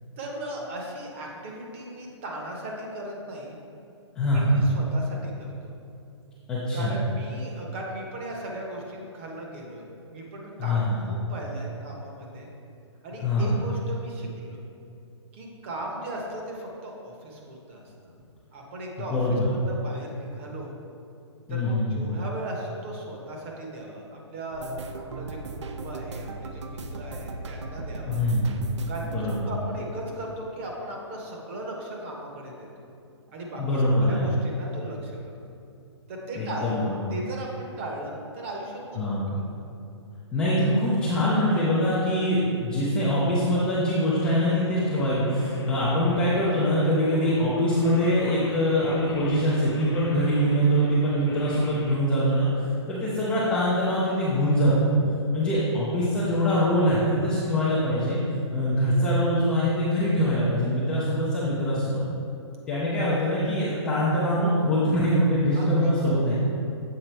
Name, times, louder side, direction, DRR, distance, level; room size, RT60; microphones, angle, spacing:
voice 1, 0.2-3.6 4.3-5.7 6.7-12.5 13.0-14.6 15.3-17.8 18.5-19.2 19.5-20.7 21.5-24.7 24.9-25.4 25.6-28.2 28.9-32.9 33.3-35.2 36.1-39.0 39.3-39.5 65.6-66.3, right 1 dB, 25° right, -1 dB, 0.9 m, -37 dB
voice 2, 4.2-4.6 6.5-6.9 10.6-11.0 13.2-13.6 19.1-19.5 21.5-22.1 28.1-28.5 29.0-29.5 33.6-34.3 36.3-37.1 39.0-39.3 40.3-54.9 55.3-58.2 58.5-62.0 62.7-66.3, equal, 5° left, -9 dB, 0.4 m, -23 dB
sound 1, 24.5-31.4 31.6-32.7 33.0-33.3 33.6-33.8, right 2 dB, 70° right, 0.6 m, -38 dB
Singing, 44.2-51.9, left 1 dB, 50° left, 1.0 m, -40 dB
7.6 x 3.9 x 4.4 m, 2.6 s
hypercardioid pair, 170°, 15 cm